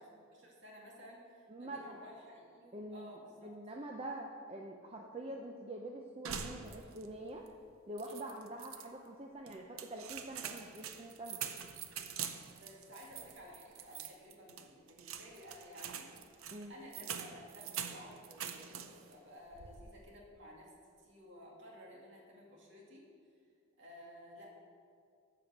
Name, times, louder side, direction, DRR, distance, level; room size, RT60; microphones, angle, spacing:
voice 1, 0.0-3.5 12.6-16.1 16.7-20.7 21.0-23.1 23.8-24.6, equal, 60° right, -2 dB, 2.3 m, -54 dB
voice 2, 1.5-2.0 2.7-3.1 3.4-7.5 7.9-11.4 16.5-16.8, right 1 dB, 30° right, 1 dB, 0.5 m, -45 dB
sound 1, 6.2-7.2 7.5-7.6 8.0-8.9 9.5-19.1 19.5-20.0, right 8 dB, 85° right, 0.7 m, -45 dB
12.5 x 4.9 x 7.2 m, 2.2 s
head